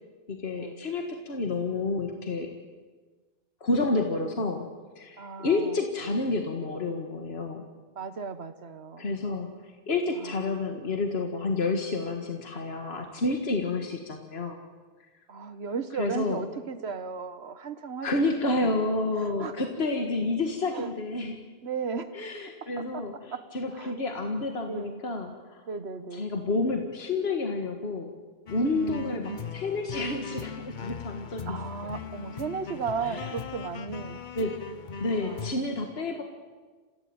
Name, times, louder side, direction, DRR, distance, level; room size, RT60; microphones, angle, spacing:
voice 1, 0.3-2.5 3.6-4.7 5.0-7.7 9.0-14.6 16.0-16.4 18.0-21.4 22.1-25.6 26.1-28.1 28.5-31.4 31.8-31.9 33.1-33.3 34.4-34.5 35.0-36.2, left 3 dB, 65° left, 3 dB, 2.0 m, -29 dB
voice 2, 5.2-5.8 7.9-9.2 10.2-10.4 15.3-18.9 19.2-19.7 20.7-20.9 21.6-22.2 22.8-23.0 23.3-23.4 23.7-23.9 24.7-25.0 25.7-26.3 28.7-29.4 31.5-34.2 35.1-35.7, right 5 dB, 70° right, 12 dB, 1.5 m, -36 dB
sound 1, 28.5-35.6, left 6 dB, 50° left, 1.0 m, -39 dB
29.5 x 15.5 x 8.8 m, 1.4 s
omnidirectional pair, 1.1 m